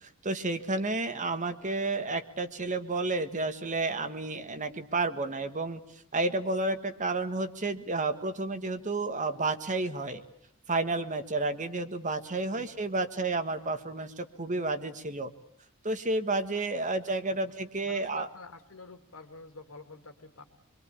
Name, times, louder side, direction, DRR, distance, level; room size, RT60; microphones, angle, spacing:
voice 1, 0.0-5.8 6.1-10.2 10.7-15.3 15.8-18.3, right 2 dB, 35° right, 10 dB, 1.6 m, -31 dB
voice 2, 12.5-12.9 17.3-20.4, left 3 dB, 80° left, 7 dB, 2.6 m, -49 dB
26.0 x 23.5 x 8.5 m, 0.67 s
head